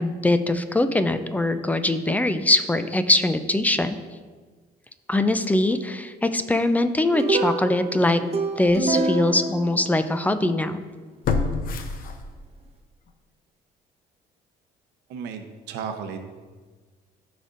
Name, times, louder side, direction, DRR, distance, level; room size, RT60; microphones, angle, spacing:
voice 1, 0.0-4.0 5.1-8.2 8.6-10.8, left 2 dB, 10° left, 10 dB, 0.4 m, -22 dB
sound 1, 7.1-10.5, right 3 dB, 40° right, 1.0 m, -27 dB
sound 2, 8.0-8.1 8.7-8.8 11.2-12.7 13.1-13.2, left 4 dB, 60° left, 0.8 m, -27 dB
voice 2, 15.1-16.4, right 6 dB, 85° right, 6 dB, 0.9 m, -34 dB
13.5 x 5.1 x 2.6 m, 1.4 s
cardioid pair, 110°, 17 cm